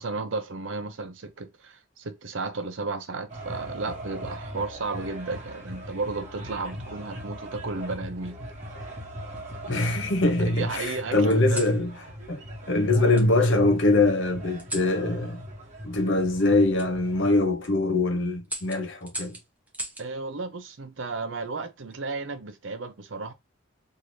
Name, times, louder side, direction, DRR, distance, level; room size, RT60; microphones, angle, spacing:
voice 1, 0.0-8.4 10.4-11.7 20.0-23.3, right 3 dB, 70° right, 0.7 m, -33 dB
sound 1, 3.3-17.4, equal, 40° right, 1.1 m, -40 dB
sound 2, 3.9-5.1 6.1-6.5 7.8-8.5 9.2-10.1 11.3-11.8 13.1-13.3 14.6-15.0 16.7-16.9 17.4-17.7 18.4-20.1 21.6-22.0, right 1 dB, 10° right, 0.7 m, -40 dB
voice 2, 9.7-11.9 12.3-12.4 12.7-15.4 15.8-19.4, left 2 dB, 65° left, 0.8 m, -23 dB
2.7 x 2.6 x 3.1 m
head